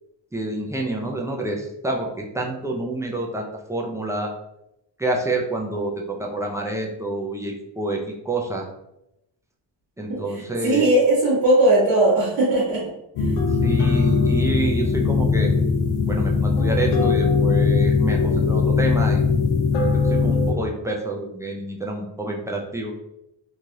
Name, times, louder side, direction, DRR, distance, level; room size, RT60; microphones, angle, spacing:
voice 1, 0.3-4.3 5.0-8.0 8.2-8.7 10.0-10.9 13.5-15.5 16.1-19.2 19.8-22.9, right 2 dB, 5° right, -1 dB, 0.3 m, -28 dB
voice 2, 10.6-12.8, right 1 dB, 70° right, -8 dB, 1.2 m, -18 dB
sound 1, 13.2-20.5, left 4 dB, 85° left, 0.7 m, -20 dB
3.2 x 2.3 x 2.6 m, 0.84 s
cardioid pair, 105°, 47 cm